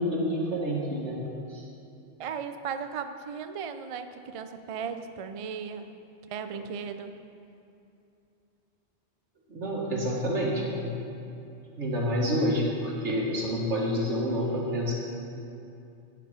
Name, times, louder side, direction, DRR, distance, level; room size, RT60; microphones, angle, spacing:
voice 1, 0.0-1.6 9.5-11.0 11.8-14.9, equal, 85° right, -2 dB, 2.0 m, -28 dB
voice 2, 2.2-5.9 6.3-7.2, right 6 dB, 45° right, 9 dB, 0.4 m, -36 dB
11.0 x 8.7 x 5.0 m, 2.7 s
omnidirectional pair, 1.2 m